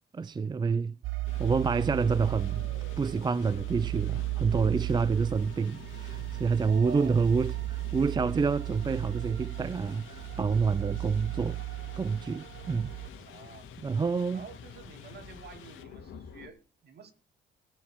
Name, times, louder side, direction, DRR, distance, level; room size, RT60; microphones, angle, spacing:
voice 1, 0.1-1.0 1.4-2.7 3.0-11.6 12.0-12.9 13.8-14.4, right 5 dB, 20° right, 0.4 m, -28 dB
sound 1, 1.0-13.1, right 18 dB, 80° right, 0.8 m, -35 dB
sound 2, 1.3-16.5, left 7 dB, 85° left, 2.3 m, -48 dB
voice 2, 6.6-7.2 13.3-13.7 14.3-17.1, right 6 dB, 55° right, 2.6 m, -48 dB
20.5 x 7.0 x 3.6 m
cardioid pair, 90°, 20 cm